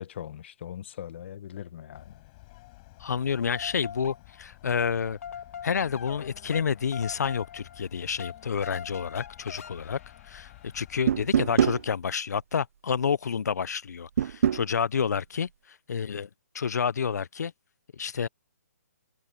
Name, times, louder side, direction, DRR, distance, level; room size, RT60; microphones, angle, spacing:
voice 1, 0.0-2.2, left 10 dB, 45° left, 0.9 m, -40 dB
sound 1, 1.9-11.9, left 22 dB, 30° left, 7.0 m, -53 dB
voice 2, 3.0-5.2 5.6-10.0 10.2-16.3 16.5-17.5 17.9-18.3, left 6 dB, 85° left, 0.5 m, -29 dB
sound 2, 3.3-4.5 4.8-10.9, left 8 dB, 60° left, 2.7 m, -43 dB
sound 3, 11.1-11.8 14.2-14.7, right 8 dB, 55° right, 0.5 m, -23 dB
hypercardioid pair, 160°, 9 cm